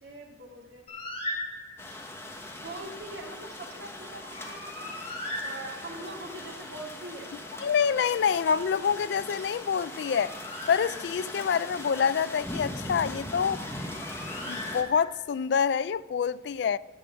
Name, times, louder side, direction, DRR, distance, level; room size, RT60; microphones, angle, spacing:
voice 1, 0.0-0.8 2.5-4.9 5.4-7.3, right 2 dB, 80° right, 2.2 m, -42 dB
Bird, 0.9-2.0 4.1-6.2 9.6-11.5 13.5-15.4, left 1 dB, 35° left, 2.3 m, -39 dB
sound 1, 1.8-14.8, left 1 dB, 15° left, 1.1 m, -40 dB
voice 2, 7.6-10.3 10.7-13.6 14.4-16.8, left 7 dB, 70° left, 0.3 m, -26 dB
11.5 x 6.8 x 6.9 m
head